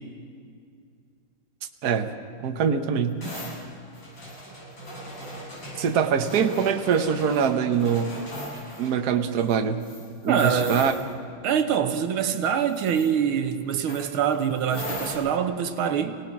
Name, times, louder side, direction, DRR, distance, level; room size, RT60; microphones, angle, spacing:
voice 1, 1.8-2.1 2.4-3.2 5.8-8.2 8.8-9.8 10.2-10.9, right 7 dB, 55° right, 1.4 m, -23 dB
sound 1, 3.2-8.9 9.4-9.5 9.8-11.1 12.6-13.1 13.9-15.1, equal, 65° left, 9.0 m, -38 dB
voice 2, 10.3-10.9 11.4-16.2, right 8 dB, 80° right, 1.9 m, -25 dB
28.5 x 18.0 x 5.9 m
omnidirectional pair, 2.3 m